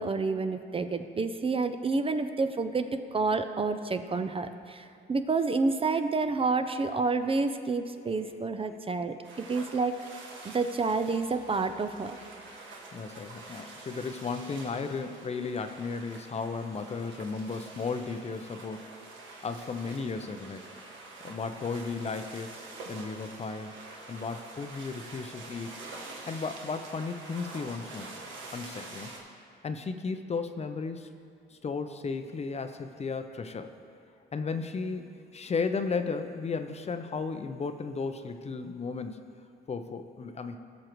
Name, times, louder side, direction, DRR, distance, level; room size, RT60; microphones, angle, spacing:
voice 1, 0.0-9.2 9.5-10.0 10.5-12.2, right 4 dB, 30° right, 9 dB, 0.5 m, -29 dB
sound 1, 9.2-29.2, right 3 dB, 75° right, 1.4 m, -46 dB
voice 2, 12.9-18.9 19.4-20.6 21.2-22.5 22.9-23.8 24.1-25.7 26.3-28.1 28.5-29.1 29.6-31.1 31.5-33.7 34.3-39.2 39.7-40.6, left 4 dB, 35° left, 8 dB, 0.6 m, -34 dB
17.5 x 6.3 x 3.0 m, 2.4 s
cardioid pair, 90°, 20 cm